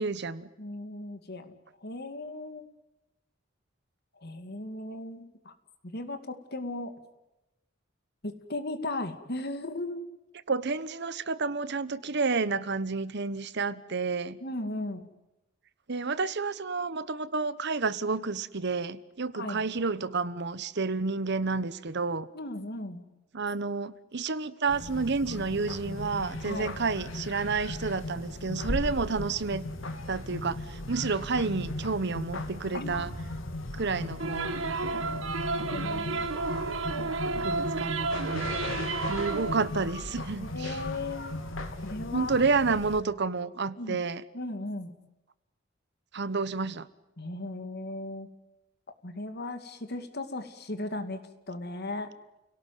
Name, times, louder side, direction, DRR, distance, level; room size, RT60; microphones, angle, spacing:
voice 1, 0.0-0.5 10.5-14.4 15.9-22.3 23.3-29.7 30.1-33.1 33.7-34.6 37.1-38.6 39.1-40.8 42.1-44.2 46.1-46.9, right 4 dB, 60° right, 1.1 m, -30 dB
voice 2, 0.6-1.5 1.8-2.6 4.2-5.5 5.9-6.9 8.2-10.1 14.4-15.0 19.3-19.6 22.3-23.1 26.4-26.7 32.7-33.0 35.7-36.3 40.4-41.4 41.8-42.4 43.8-44.0 44.3-44.9 47.2-48.3 49.0-51.2 51.5-52.1, left 2 dB, 55° left, 2.4 m, -36 dB
sound 1, 24.7-43.0, left 1 dB, 85° left, 2.8 m, -37 dB
sound 2, 34.2-39.7, right 3 dB, 80° right, 1.9 m, -32 dB
29.5 x 18.0 x 9.3 m
head